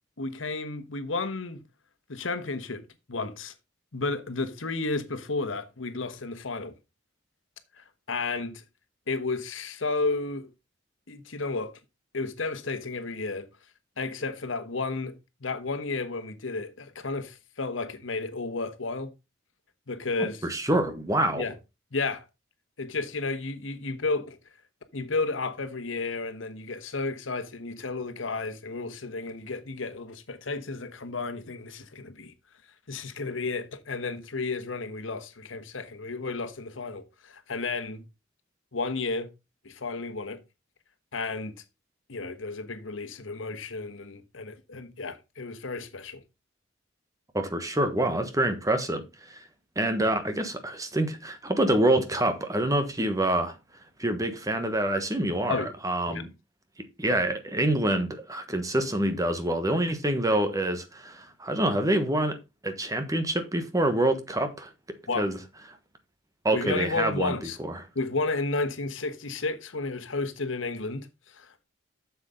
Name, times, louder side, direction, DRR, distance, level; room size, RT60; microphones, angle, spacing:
voice 1, 0.2-1.6 2.1-3.5 3.9-6.7 7.8-8.6 9.1-10.5 11.1-11.7 12.1-13.5 14.0-19.1 19.9-20.5 21.4-21.5 21.9-22.3 22.8-24.4 24.9-32.3 32.9-38.0 38.7-39.3 39.6-40.4 41.1-41.6 42.1-46.2 55.5-55.7 56.1-56.2 65.1-65.3 66.5-67.6 67.9-71.6, left 3 dB, 85° left, 1.2 m, -32 dB
voice 2, 20.2-21.4 47.3-49.0 49.3-49.4 49.8-53.5 54.0-56.3 57.0-62.4 62.6-64.7 65.1-65.4 66.4-67.3 67.6-67.7, right 1 dB, 20° right, 1.2 m, -26 dB
7.9 x 7.1 x 3.8 m
head